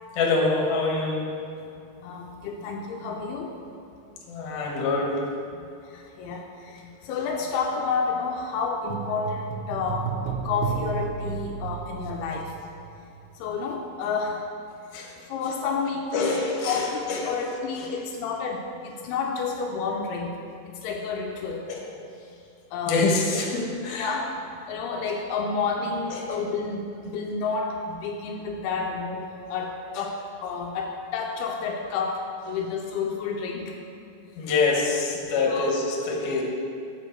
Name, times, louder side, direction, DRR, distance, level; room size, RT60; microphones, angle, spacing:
voice 1, 0.2-1.3 4.3-5.1 14.9-15.1 16.1-17.2 21.7-21.8 22.9-24.1 34.4-36.4, left 3 dB, 65° left, -2 dB, 2.4 m, -25 dB
voice 2, 2.0-3.5 5.5-12.5 13.4-14.4 15.2-20.4 20.8-21.6 22.7-23.1 23.9-24.3 24.7-33.8 35.5-35.8, left 5 dB, 85° left, 1 dB, 2.6 m, -30 dB
sound 1, 8.9-13.4 13.6-13.7, right 7 dB, 80° right, 2.2 m, -33 dB
8.1 x 7.2 x 4.5 m, 2.5 s
omnidirectional pair, 4.5 m